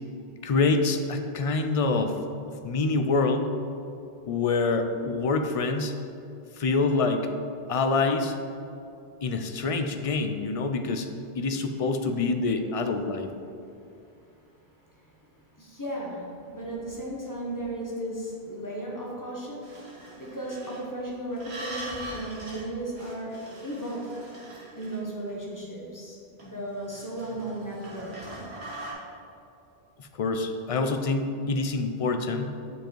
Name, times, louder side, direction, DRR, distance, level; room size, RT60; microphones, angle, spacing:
voice 1, 0.4-2.1 2.6-3.5 4.3-5.9 6.6-7.3 7.7-8.4 9.2-11.1 11.4-13.3 30.0-32.6, left 3 dB, 50° left, 7 dB, 0.4 m, -26 dB
voice 2, 14.2-19.7 20.0-23.4 23.6-24.1 24.7-28.5, right 1 dB, 20° left, -4 dB, 1.2 m, -36 dB
sound 1, 19.6-20.8 21.3-22.7 22.9-25.3 26.4-28.9, right 1 dB, 90° right, 1.7 m, -42 dB
7.8 x 4.9 x 4.5 m, 2.6 s
omnidirectional pair, 1.1 m